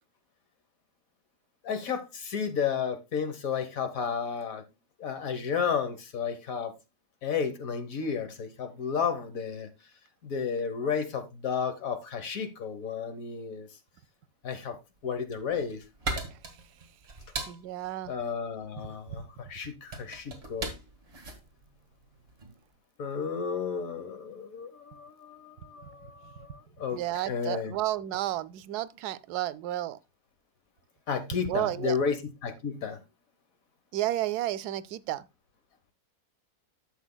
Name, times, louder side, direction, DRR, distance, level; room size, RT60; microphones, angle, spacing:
voice 1, 1.6-4.6 5.0-6.7 7.2-9.7 10.2-13.7 14.4-14.8 15.0-15.8 18.1-19.2 19.5-20.7 23.0-27.0 27.3-27.7 31.1-33.0, left 6 dB, 65° left, 1.5 m, -32 dB
sound 1, 15.2-22.6, right 3 dB, 40° right, 2.1 m, -39 dB
voice 2, 16.3-16.6 17.5-18.1 19.1-19.3 25.8-25.9 26.2-26.6 26.9-30.0 31.5-32.0 33.9-35.3, right 14 dB, 90° right, 1.1 m, -32 dB
11.5 x 7.1 x 2.2 m
omnidirectional pair, 1.6 m